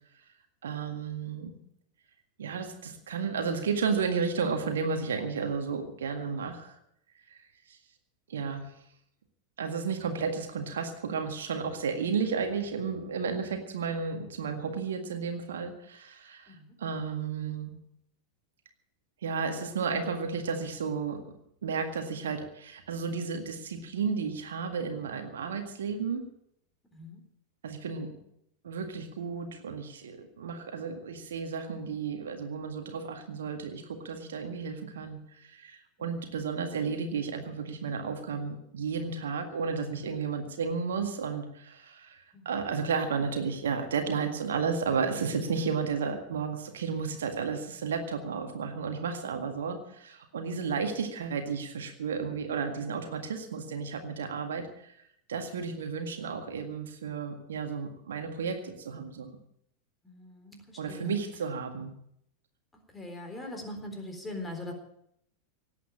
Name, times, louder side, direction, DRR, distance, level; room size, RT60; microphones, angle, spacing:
voice 1, 0.6-1.5 2.4-6.8 7.3-7.8 8.3-8.7 9.6-17.7 19.2-21.2 21.6-26.2 27.6-28.1 28.6-54.9 55.3-59.4 60.8-61.9, right 5 dB, 65° right, 6 dB, 1.9 m, -33 dB
voice 2, 26.9-27.2 36.2-36.3 42.3-42.6 50.5-50.8 60.0-61.1 62.9-64.7, left 1 dB, 10° left, 3 dB, 3.8 m, -42 dB
18.0 x 8.5 x 8.5 m, 0.75 s
figure-of-eight pair, 90°, 0 cm